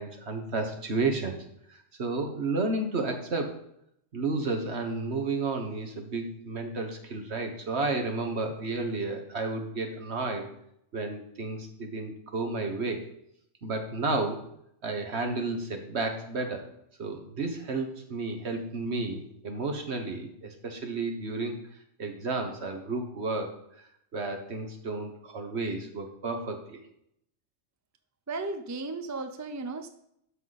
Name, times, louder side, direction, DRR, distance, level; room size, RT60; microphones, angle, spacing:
voice 1, 0.0-1.4 1.7-3.5 4.1-10.5 10.9-13.0 13.6-14.4 14.8-16.6 17.0-21.6 22.0-23.5 24.1-26.8, right 3 dB, 55° right, 5 dB, 1.6 m, -32 dB
voice 2, 28.3-29.9, right 3 dB, 20° right, 7 dB, 0.4 m, -35 dB
12.5 x 5.9 x 4.2 m, 0.74 s
omnidirectional pair, 1.3 m